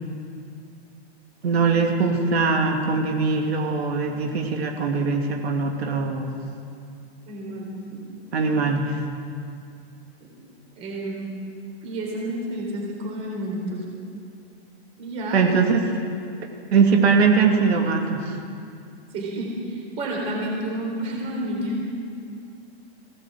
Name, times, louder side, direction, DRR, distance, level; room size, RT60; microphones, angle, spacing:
voice 1, 1.4-6.3 8.3-9.0 15.3-15.8 16.7-18.4, right 4 dB, 75° right, 2 dB, 2.8 m, -21 dB
voice 2, 7.3-8.0 10.8-11.3 11.8-13.8 15.0-15.5 19.1-21.8, right 1 dB, 20° right, -1 dB, 3.9 m, -30 dB
21.5 x 17.0 x 7.8 m, 2.4 s
hypercardioid pair, 175°, 32 cm